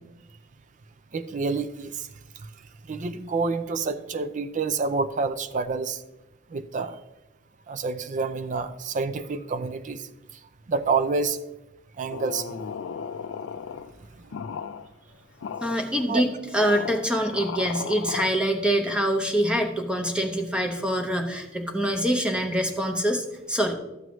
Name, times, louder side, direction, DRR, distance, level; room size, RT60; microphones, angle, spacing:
voice 1, 1.1-2.1 2.9-6.0 6.5-7.0 7.7-10.1 10.7-11.4 12.0-12.6 16.1-16.2, right 4 dB, 40° right, 12 dB, 0.4 m, -28 dB
sound 1, 12.1-13.9 14.3-14.9 15.4-15.8 16.6-18.3, left 6 dB, 75° left, 0.4 m, -35 dB
voice 2, 15.6-23.8, equal, 5° right, 3 dB, 0.8 m, -25 dB
12.0 x 7.7 x 3.1 m, 0.98 s
head